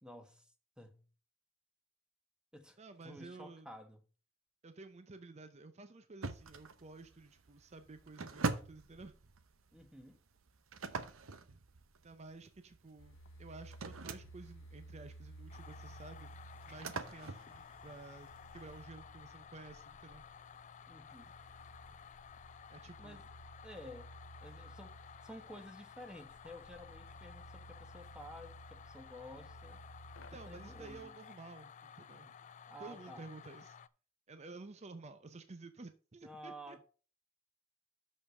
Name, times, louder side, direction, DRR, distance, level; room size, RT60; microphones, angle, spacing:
voice 1, 0.0-1.0 2.5-4.0 9.7-10.2 20.9-21.3 23.0-23.2 23.6-24.1 24.4-29.8 30.3-31.1 32.7-33.3 36.2-36.8, equal, 5° right, 1.1 m, -52 dB
voice 2, 2.8-3.7 4.6-9.2 12.0-16.3 16.7-20.2 22.7-23.2 30.3-32.3 32.8-33.8 34.3-36.8, right 3 dB, 35° right, 0.6 m, -52 dB
sound 1, 6.2-18.8, right 3 dB, 75° right, 0.8 m, -44 dB
sound 2, 13.0-31.0, right 1 dB, 65° left, 0.7 m, -56 dB
sound 3, 15.5-33.9, left 7 dB, 35° left, 0.4 m, -55 dB
6.5 x 5.5 x 6.3 m
head